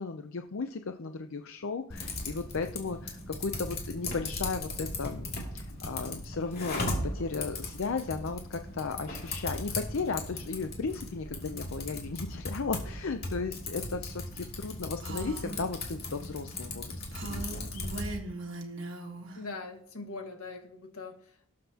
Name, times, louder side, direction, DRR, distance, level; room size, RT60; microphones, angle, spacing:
voice 1, 0.0-17.9, left 4 dB, 65° left, 7 dB, 0.6 m, -35 dB
Typing, 1.9-18.1, left 2 dB, 45° left, 2.6 m, -38 dB
Female speech woman speaking, 15.0-15.6 17.1-19.4, right 2 dB, 55° right, 1.5 m, -39 dB
voice 2, 19.3-21.5, left 3 dB, 80° left, 5 dB, 1.7 m, -42 dB
19.0 x 7.6 x 2.9 m, 0.66 s
head